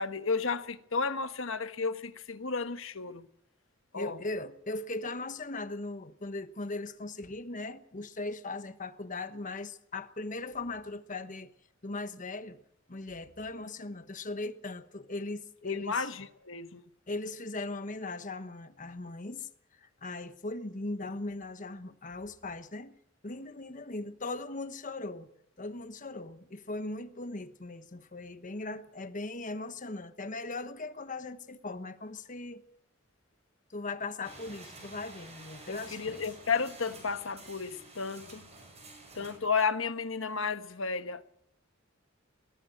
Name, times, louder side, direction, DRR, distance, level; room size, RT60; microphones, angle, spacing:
voice 1, 0.0-3.3 3.9-4.2 15.6-16.8 35.7-38.4 39.1-41.2, left 5 dB, 75° left, 1.3 m, -33 dB
voice 2, 3.9-11.5 11.8-12.6 12.9-16.1 17.1-19.5 19.8-23.0 23.2-25.3 25.6-32.6 33.7-36.2, left 2 dB, 40° left, 1.2 m, -39 dB
sound 1, 34.2-39.4, right 2 dB, 35° right, 6.8 m, -50 dB
21.0 x 17.0 x 7.9 m
head